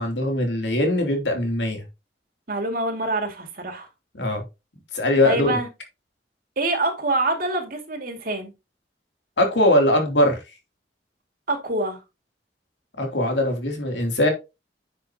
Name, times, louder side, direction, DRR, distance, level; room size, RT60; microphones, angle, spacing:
voice 1, 0.0-1.8 4.2-4.4 4.9-5.5 9.4-10.4 13.0-14.3, left 1 dB, 85° left, 3.0 m, -21 dB
voice 2, 2.5-3.9 5.2-5.7 6.6-8.5 11.5-12.0, right 2 dB, 55° right, 2.4 m, -25 dB
9.7 x 6.8 x 2.9 m
head